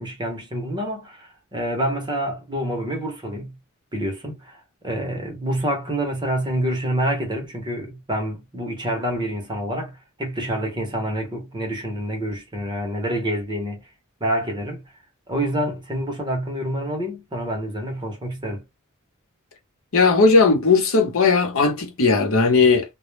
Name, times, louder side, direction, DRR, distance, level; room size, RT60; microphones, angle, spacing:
voice 1, 0.0-3.6 3.9-13.8 14.2-14.8 15.3-18.6, right 1 dB, 20° right, 0.7 m, -27 dB
voice 2, 19.9-22.8, left 4 dB, 70° left, 0.8 m, -17 dB
2.1 x 2.0 x 3.0 m
head